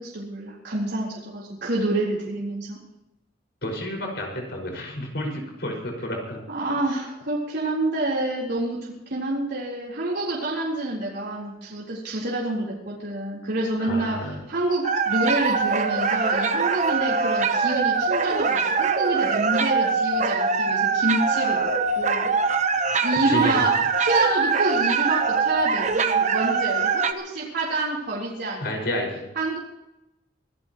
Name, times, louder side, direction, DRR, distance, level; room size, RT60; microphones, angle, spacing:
voice 1, 0.0-2.8 6.5-14.2 14.5-22.3 22.8-29.1 29.4-29.6, right 2 dB, 60° right, -6 dB, 4.1 m, -28 dB
voice 2, 3.6-6.4 13.8-14.4 23.2-23.8 28.6-29.2, left 1 dB, 60° left, 0 dB, 5.9 m, -30 dB
sound 1, 14.8-27.1, right 5 dB, 40° right, 1.0 m, -23 dB
25.5 x 16.5 x 3.2 m, 0.90 s
head